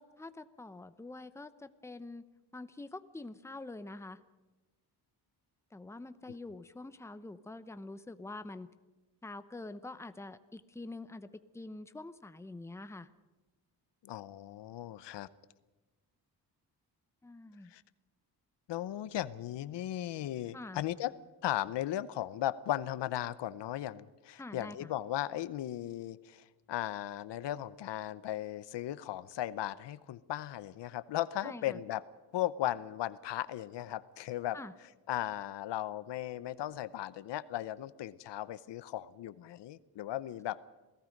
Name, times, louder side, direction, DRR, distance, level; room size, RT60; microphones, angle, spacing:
voice 1, 0.0-2.2 2.5-4.2 5.7-8.7 9.2-13.1 17.2-17.7 20.5-20.8 24.4-24.9 31.4-31.8 34.5-34.7, left 2 dB, 5° left, 12 dB, 0.8 m, -46 dB
voice 2, 14.0-15.3 17.7-17.8 18.7-21.1 21.4-32.0 32.3-34.6 35.1-40.6, left 13 dB, 85° left, 16 dB, 0.9 m, -37 dB
27.5 x 17.5 x 5.3 m, 1.2 s
cardioid pair, 125°, 41 cm